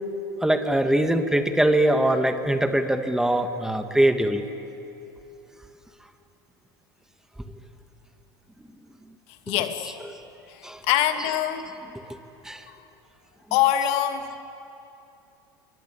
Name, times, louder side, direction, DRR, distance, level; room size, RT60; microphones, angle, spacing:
voice 1, 0.4-4.5 9.9-10.2 10.6-10.8 12.4-12.6 13.5-13.6, right 1 dB, 5° right, 7 dB, 2.0 m, -22 dB
voice 2, 9.5-9.9 10.8-11.7 13.5-14.4, left 11 dB, 60° left, 7 dB, 2.4 m, -23 dB
29.5 x 23.5 x 8.7 m, 2.8 s
hypercardioid pair, 90°, 12 cm